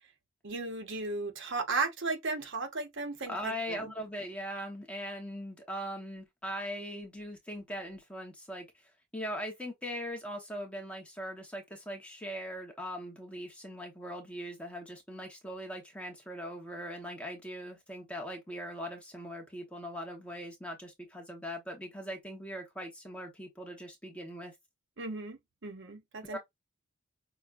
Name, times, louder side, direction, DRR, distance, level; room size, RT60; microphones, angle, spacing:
voice 1, 0.4-3.9 25.0-26.4, right 3 dB, 55° right, 0.8 m, -35 dB
voice 2, 3.3-8.7 9.1-24.5 26.2-26.4, equal, 5° left, 0.9 m, -40 dB
5.8 x 2.2 x 2.4 m
head